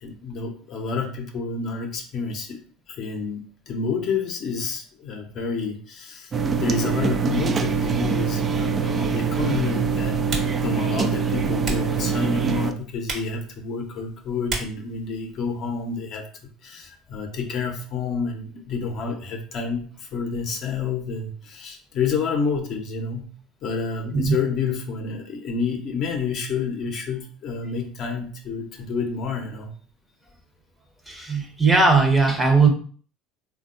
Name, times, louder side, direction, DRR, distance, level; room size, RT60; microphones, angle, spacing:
voice 1, 0.0-10.2 10.6-16.3 16.6-23.3 23.6-29.7, left 5 dB, 55° left, 2 dB, 0.6 m, -29 dB
sound 1, 6.3-12.7, right 6 dB, 35° right, 0.3 m, -24 dB
Typing, 8.5-16.0, right 2 dB, 50° right, 1.1 m, -38 dB
voice 2, 31.1-32.7, right 4 dB, 15° right, 3 dB, 0.7 m, -18 dB
3.4 x 2.2 x 2.5 m, 0.42 s
hypercardioid pair, 80°, 0 cm